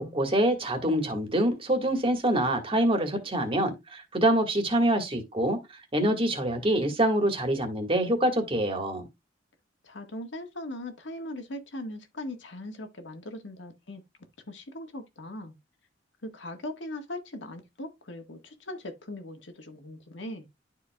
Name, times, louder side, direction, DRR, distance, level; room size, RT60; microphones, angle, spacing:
voice 1, 0.0-5.6 5.9-9.1, right 1 dB, 30° right, 1.7 m, -25 dB
voice 2, 9.8-14.0 14.5-15.5 16.2-20.5, left 1 dB, 85° left, 1.6 m, -40 dB
11.5 x 4.6 x 2.3 m
head